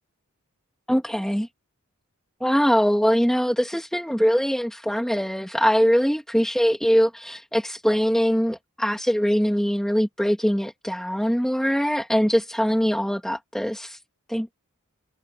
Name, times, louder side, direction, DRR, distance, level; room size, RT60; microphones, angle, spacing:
voice 1, 0.9-1.5 2.4-14.0 14.3-14.6, equal, ahead, 1.7 m, -22 dB
head